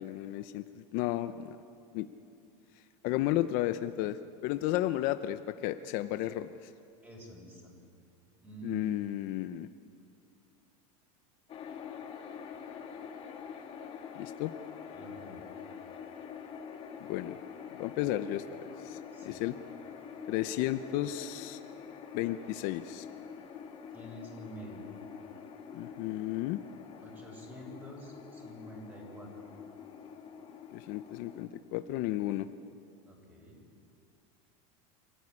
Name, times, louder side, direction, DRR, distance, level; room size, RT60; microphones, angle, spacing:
voice 1, 0.0-1.6 1.9-2.1 3.0-6.7 8.6-9.7 14.2-14.5 17.0-17.4 17.7-19.6 20.3-21.6 22.1-23.1 25.7-26.6 30.7-32.5, left 14 dB, 55° left, 10 dB, 0.8 m, -33 dB
voice 2, 7.0-7.7 8.4-8.9 14.9-15.4 19.1-19.4 23.9-24.8 27.0-29.4 33.1-33.6, right 1 dB, 10° right, -1 dB, 7.2 m, -48 dB
sound 1, 11.5-31.5, left 7 dB, 35° left, 3.0 m, -46 dB
28.0 x 15.5 x 9.9 m, 2.5 s
supercardioid pair, 140°, 17 cm